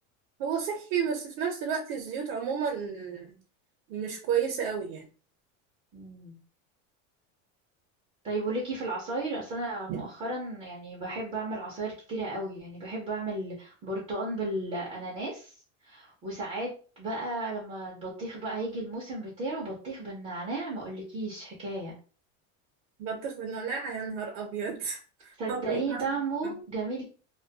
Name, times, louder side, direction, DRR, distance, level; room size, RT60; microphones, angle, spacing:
voice 1, 0.4-3.3 3.9-5.0 9.9-10.0 23.0-26.0 26.4-26.6, right 7 dB, 60° right, 1 dB, 0.6 m, -32 dB
voice 2, 5.9-6.4 8.2-15.5 15.8-16.7 17.0-21.9 25.4-27.0, right 2 dB, 20° right, -3 dB, 0.3 m, -34 dB
2.2 x 2.1 x 2.6 m, 0.38 s
cardioid pair, 165°, 40 cm